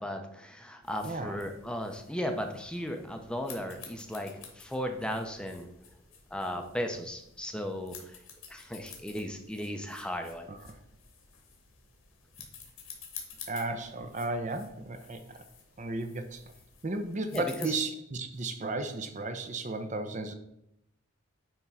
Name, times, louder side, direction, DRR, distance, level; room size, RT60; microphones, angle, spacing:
voice 1, 0.0-5.7 6.3-8.2 8.5-10.5 17.3-17.7, equal, 5° left, 5 dB, 0.6 m, -36 dB
sound 1, 0.8-17.7, left 6 dB, 80° left, 1.8 m, -51 dB
voice 2, 1.0-1.4 10.5-10.8 13.5-15.4 15.8-16.4 16.8-20.3, right 2 dB, 35° right, 7 dB, 0.7 m, -34 dB
9.0 x 3.5 x 5.5 m, 0.80 s
head